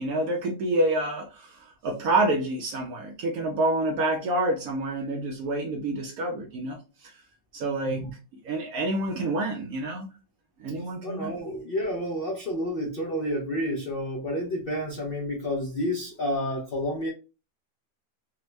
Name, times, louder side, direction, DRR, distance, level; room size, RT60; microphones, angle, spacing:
voice 1, 0.0-7.1 7.5-8.0 8.4-10.1 10.6-11.4, right 2 dB, 70° right, 0.9 m, -28 dB
voice 2, 11.0-17.1, equal, 75° left, 0.5 m, -30 dB
3.5 x 2.0 x 3.1 m
omnidirectional pair, 1.9 m